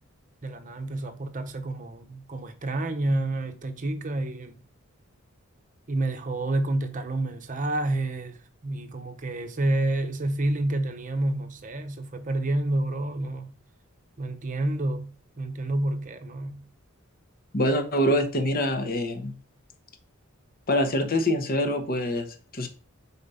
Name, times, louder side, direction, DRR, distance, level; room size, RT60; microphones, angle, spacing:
voice 1, 0.4-4.6 5.9-13.5 14.2-15.1 15.4-16.6, right 2 dB, 35° right, 0.7 m, -29 dB
voice 2, 17.5-19.3 20.7-22.7, equal, 45° left, 0.9 m, -25 dB
5.0 x 4.2 x 5.5 m
head